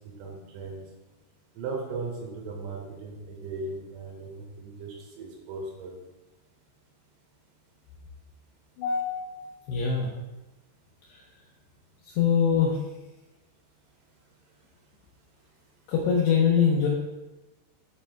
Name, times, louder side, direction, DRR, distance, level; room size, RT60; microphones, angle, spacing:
voice 1, 0.2-0.8 1.6-6.0, right 3 dB, 80° right, 0 dB, 4.0 m, -37 dB
voice 2, 8.8-10.1 11.1-11.2 12.0-12.8 15.9-16.9, left 6 dB, 80° left, -2 dB, 2.4 m, -24 dB
11.0 x 7.4 x 2.2 m, 1.1 s
omnidirectional pair, 5.8 m